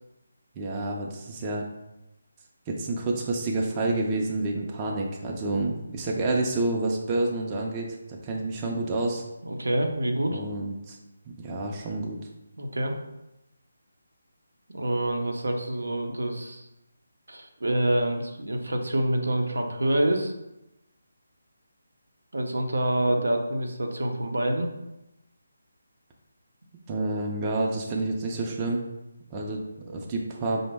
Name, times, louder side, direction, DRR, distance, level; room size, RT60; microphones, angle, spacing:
voice 1, 0.6-1.6 2.7-9.2 10.3-11.0 11.3-12.2 26.9-28.9 29.3-30.6, right 2 dB, 20° right, -1 dB, 0.5 m, -29 dB
voice 2, 9.4-10.4 12.6-13.0 14.7-16.7 17.3-20.3 22.3-24.7 27.0-27.1, right 1 dB, 75° right, 3 dB, 0.6 m, -26 dB
5.0 x 2.1 x 3.4 m, 0.92 s
figure-of-eight pair, 155°, 0 cm